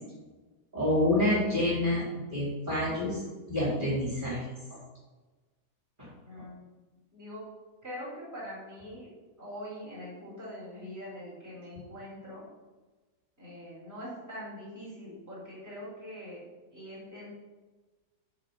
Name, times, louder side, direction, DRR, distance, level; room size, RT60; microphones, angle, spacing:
voice 1, 0.7-2.0 2.3-3.2 3.5-4.4 4.7-4.8 6.0-6.1, left 1 dB, 30° right, -7 dB, 4.9 m, -27 dB
voice 2, 6.2-6.7 7.1-7.5 7.8-12.4 13.4-16.4 16.7-17.3, equal, 10° right, -8 dB, 4.5 m, -43 dB
11.5 x 5.3 x 8.5 m, 1.2 s
omnidirectional pair, 1.7 m